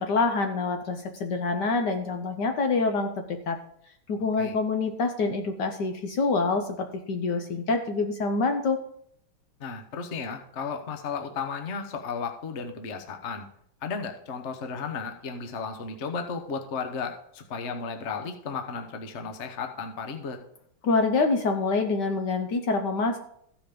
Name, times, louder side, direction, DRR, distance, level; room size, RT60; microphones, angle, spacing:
voice 1, 0.0-3.6 4.1-8.8 20.8-23.2, left 3 dB, 60° left, 5 dB, 1.3 m, -26 dB
voice 2, 9.6-13.5 13.8-20.4, left 5 dB, 45° left, 5 dB, 0.9 m, -34 dB
14.5 x 5.1 x 5.1 m, 0.70 s
omnidirectional pair, 2.4 m